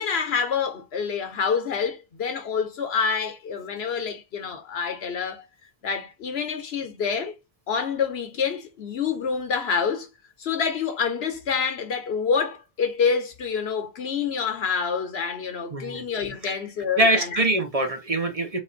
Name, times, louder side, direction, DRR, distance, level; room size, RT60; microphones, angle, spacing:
voice 1, 0.0-5.5 5.8-7.4 7.7-10.1 10.4-17.4, left 6 dB, 80° left, 1.1 m, -27 dB
voice 2, 15.7-16.0 16.4-16.5 17.0-18.6, right 1 dB, 40° right, 0.7 m, -23 dB
4.0 x 2.5 x 3.8 m
omnidirectional pair, 1.0 m